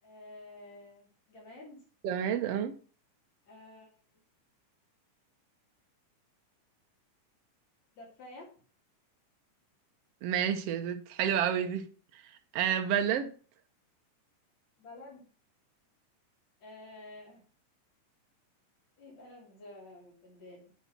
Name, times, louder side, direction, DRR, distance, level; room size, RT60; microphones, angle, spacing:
voice 1, 0.0-1.8 3.5-3.9 8.0-8.5 14.8-15.3 16.6-17.4 19.0-20.7, left 2 dB, 55° left, 4.4 m, -50 dB
voice 2, 2.0-2.7 10.2-11.9 12.1-13.3, right 9 dB, 65° right, 1.7 m, -30 dB
9.5 x 5.8 x 6.0 m
omnidirectional pair, 3.7 m